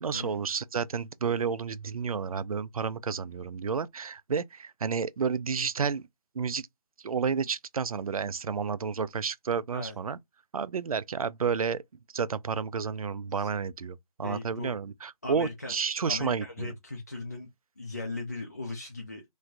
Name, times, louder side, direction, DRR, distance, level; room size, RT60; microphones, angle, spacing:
voice 1, 0.0-6.1 6.4-6.7 7.0-10.2 10.5-11.8 12.1-16.7, right 6 dB, 70° right, 0.4 m, -31 dB
voice 2, 14.2-14.8 15.2-15.7 16.1-17.5 17.8-19.3, left 2 dB, 25° left, 0.4 m, -38 dB
3.1 x 2.1 x 3.7 m
figure-of-eight pair, 175°, 19 cm